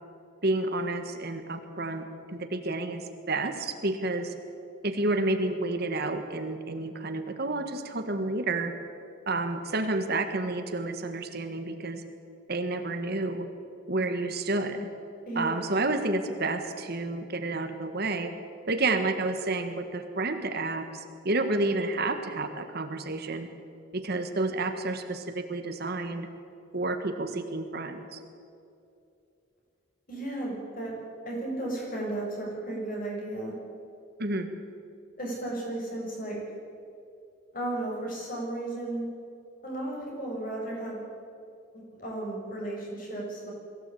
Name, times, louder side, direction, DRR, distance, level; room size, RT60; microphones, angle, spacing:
voice 1, 0.4-4.3 4.8-8.7 9.3-12.0 12.5-13.4 13.9-14.9 15.3-18.3 18.7-23.5 23.9-26.3 26.7-28.2 34.2-34.5, right 2 dB, 50° right, 6 dB, 1.6 m, -30 dB
voice 2, 15.3-15.6 30.1-30.9 31.3-33.5 35.2-36.4 37.5-39.1 39.6-41.0 41.9-43.5, right 1 dB, 40° left, -2 dB, 7.1 m, -34 dB
22.0 x 16.0 x 8.6 m, 2.6 s
head